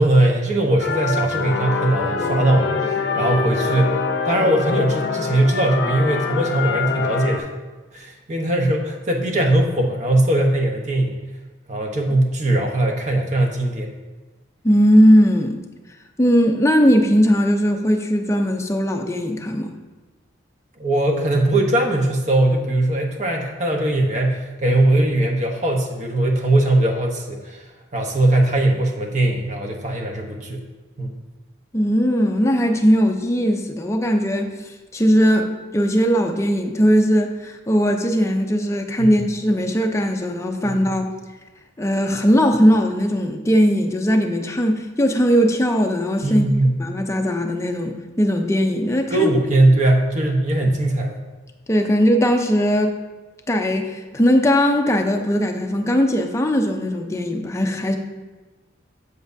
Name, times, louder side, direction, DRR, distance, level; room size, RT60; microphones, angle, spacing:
voice 1, 0.0-4.0 4.3-7.5 7.9-11.1 11.7-13.9 20.8-27.6 27.9-30.6 31.0-31.2 39.0-39.1 40.6-40.8 46.2-46.7 49.1-51.2, right 1 dB, 35° right, 1 dB, 0.8 m, -20 dB
sound 1, 0.8-7.4, left 4 dB, 60° left, 0.6 m, -24 dB
voice 2, 14.6-15.6 16.2-19.7 31.7-41.1 41.8-46.5 46.8-49.3 51.7-52.9 53.5-58.0, equal, 15° left, 4 dB, 0.5 m, -19 dB
7.9 x 7.6 x 2.6 m, 1.2 s
head